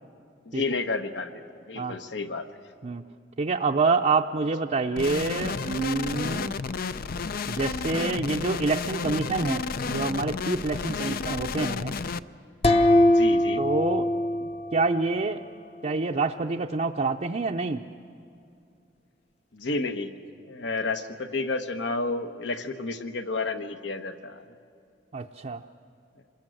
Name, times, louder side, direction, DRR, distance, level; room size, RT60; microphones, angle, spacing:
voice 1, 0.4-2.5 11.0-11.2 13.1-13.6 19.5-20.1 20.4-24.4, left 3 dB, 70° left, 8 dB, 1.2 m, -31 dB
voice 2, 3.4-6.6 7.5-11.9 13.6-14.1 14.4-15.4 15.8-17.8 25.1-25.6, right 3 dB, 40° right, 1 dB, 0.6 m, -27 dB
sound 1, 5.0-12.2, left 4 dB, 55° left, 0.5 m, -31 dB
sound 2, 12.6-15.4, left 1 dB, 35° left, 0.8 m, -22 dB
27.0 x 20.5 x 7.8 m, 2.4 s
head